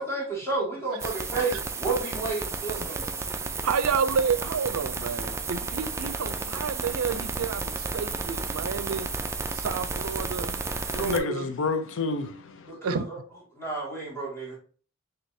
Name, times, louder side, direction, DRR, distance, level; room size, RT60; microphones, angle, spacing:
voice 1, 0.0-3.1 12.7-13.2 13.6-14.6, right 3 dB, 15° left, 2.0 m, -31 dB
sound 1, 1.0-11.2, right 3 dB, 15° right, 0.3 m, -32 dB
voice 2, 3.6-9.1 9.5-10.6 10.9-11.5 12.7-13.0, right 6 dB, 85° right, 0.5 m, -30 dB
voice 3, 10.7-12.7, left 4 dB, 65° left, 0.5 m, -30 dB
6.3 x 2.9 x 2.7 m
head